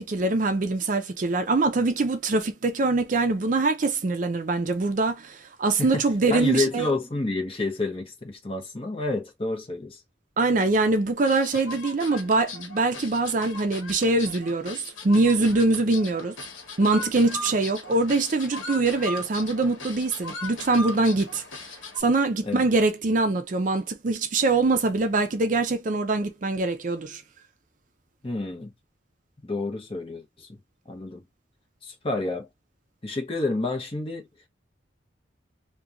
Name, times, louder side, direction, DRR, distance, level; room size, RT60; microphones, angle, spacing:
voice 1, 0.0-6.9 10.4-16.3 16.8-21.4 22.0-27.2, right 3 dB, 40° right, 0.4 m, -23 dB
voice 2, 6.3-10.0 22.4-22.6 28.2-28.7 29.4-30.6 30.9-31.2 31.8-32.5 33.0-34.3, left 2 dB, 30° left, 0.8 m, -29 dB
sound 1, 11.3-22.0, left 2 dB, 85° left, 1.0 m, -38 dB
2.9 x 2.2 x 2.4 m
head